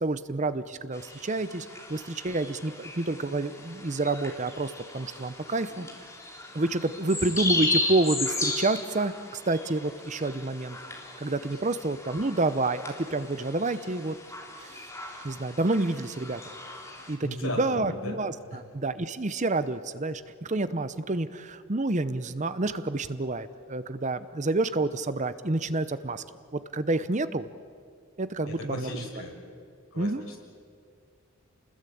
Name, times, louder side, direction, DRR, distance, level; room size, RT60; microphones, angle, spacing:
voice 1, 0.0-5.9 6.5-10.8 11.2-14.2 14.6-14.8 15.2-16.4 17.1-26.2 26.5-27.5 28.2-29.0 30.0-30.2, right 2 dB, 35° right, 13 dB, 0.8 m, -29 dB
sound 1, 0.9-17.1, left 2 dB, 15° left, 3.6 m, -36 dB
voice 2, 17.2-18.1 18.5-18.6 28.5-29.4 29.9-30.4, left 1 dB, 70° left, 1 dB, 6.2 m, -36 dB
29.0 x 20.5 x 8.6 m, 2.2 s
head